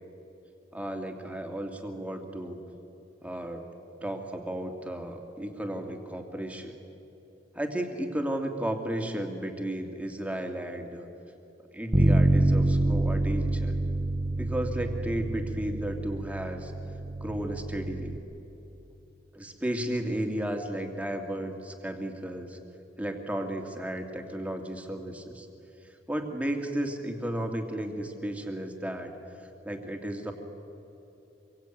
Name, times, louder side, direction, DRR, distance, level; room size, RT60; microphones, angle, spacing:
voice 1, 0.7-2.6 3.2-3.6 4.0-6.7 7.5-11.1 11.7-13.8 14.3-16.7 17.2-18.2 19.3-22.6 23.0-25.5 25.8-29.1 29.4-30.3, right 1 dB, 5° right, 4 dB, 2.4 m, -34 dB
Bass guitar, 11.9-18.2, right 1 dB, 25° right, 1.0 m, -27 dB
26.0 x 23.5 x 9.2 m, 3.0 s
head